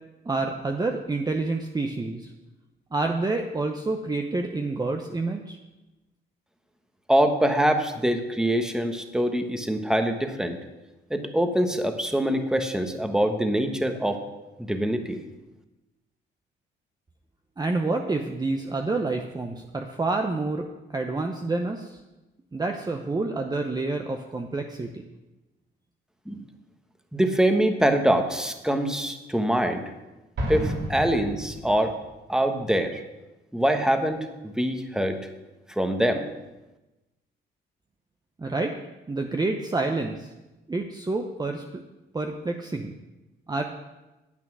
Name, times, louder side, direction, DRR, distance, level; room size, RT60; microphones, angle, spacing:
voice 1, 0.3-2.3 2.9-5.6 17.6-22.0 22.5-25.0 38.4-38.8 39.1-40.3 40.7-41.8 42.1-42.9 43.5-43.6, right 3 dB, 20° right, 3 dB, 0.8 m, -28 dB
voice 2, 7.1-10.6 11.1-14.2 14.6-15.2 26.3-26.4 27.1-29.8 30.5-31.9 32.3-33.0 33.5-35.2 35.8-36.3, right 1 dB, 5° right, 6 dB, 1.3 m, -24 dB
Explosion, 30.4-32.1, right 1 dB, 60° right, 3.2 m, -31 dB
9.5 x 8.8 x 6.1 m, 1.0 s
cardioid pair, 90°, 20 cm